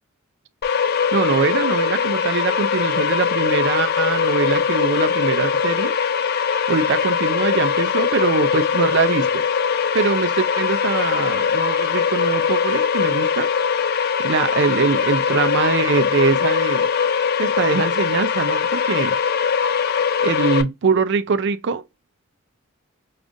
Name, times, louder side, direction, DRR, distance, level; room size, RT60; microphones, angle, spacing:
sound 1, 0.6-20.6, left 6 dB, 45° left, 0.3 m, -21 dB
voice 1, 1.1-5.9 6.7-9.4 9.9-13.5 14.2-16.9 17.4-19.2 20.2-21.8, right 5 dB, 55° right, 0.4 m, -22 dB
5.0 x 2.4 x 2.5 m
head